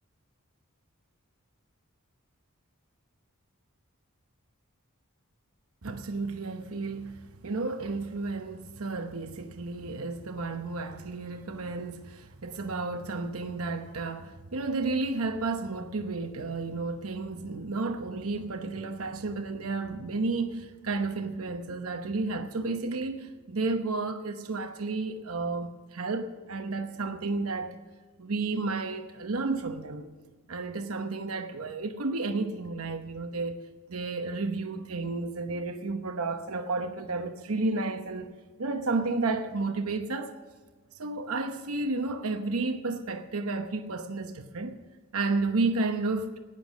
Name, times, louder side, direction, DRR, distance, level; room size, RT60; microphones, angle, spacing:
voice 1, 5.8-27.8 28.2-30.1 30.5-33.6 33.9-38.3 38.6-40.4 41.0-44.7 45.1-46.4, right 3 dB, 70° right, 1.0 m, -32 dB
16.0 x 10.0 x 6.2 m
head